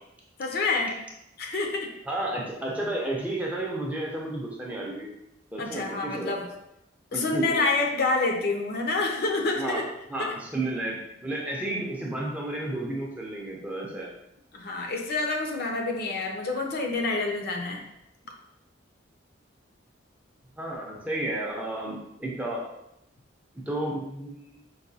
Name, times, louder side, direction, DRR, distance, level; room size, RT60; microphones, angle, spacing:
voice 1, 0.4-0.9 1.4-1.9 5.6-6.5 7.1-9.8 10.2-10.3 14.5-17.8, left 3 dB, 55° left, 2 dB, 0.5 m, -27 dB
voice 2, 2.1-5.1 5.5-6.4 7.1-7.4 9.5-9.8 10.1-11.0 11.2-14.1 20.6-22.6 23.5-24.6, right 1 dB, 10° right, -3 dB, 0.5 m, -32 dB
4.6 x 2.2 x 2.7 m, 0.83 s
head